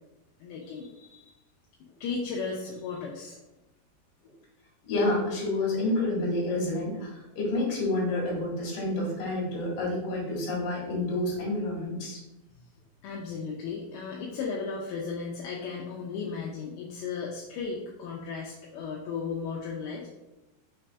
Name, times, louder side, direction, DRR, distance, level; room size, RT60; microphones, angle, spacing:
voice 1, 0.4-1.3 2.0-3.4 13.0-20.1, left 5 dB, 80° left, -2 dB, 2.4 m, -35 dB
voice 2, 4.8-12.2, left 2 dB, 65° left, -5 dB, 2.9 m, -29 dB
5.9 x 3.3 x 2.3 m, 0.98 s
omnidirectional pair, 4.5 m